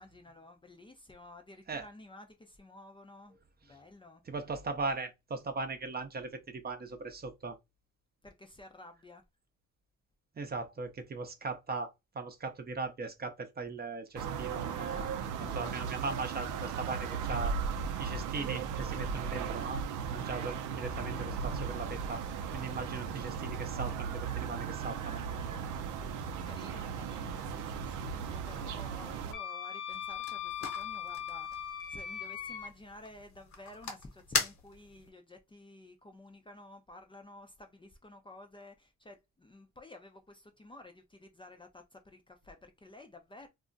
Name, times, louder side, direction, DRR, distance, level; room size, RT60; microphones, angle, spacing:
voice 1, 0.0-3.3 3.6-4.2 8.2-9.2 26.4-43.5, left 2 dB, 15° left, 0.5 m, -52 dB
voice 2, 4.3-7.6 10.4-15.1 15.4-17.5 18.0-19.8 20.1-22.2 22.5-25.2, right 3 dB, 30° right, 0.6 m, -39 dB
sound 1, 14.2-29.3, right 6 dB, 85° right, 0.5 m, -36 dB
Wind instrument woodwind instrument, 29.3-32.7, left 9 dB, 80° left, 0.7 m, -39 dB
sound 2, 29.9-35.1, left 5 dB, 65° left, 1.1 m, -40 dB
2.3 x 2.1 x 3.8 m
cardioid pair, 90°, 30 cm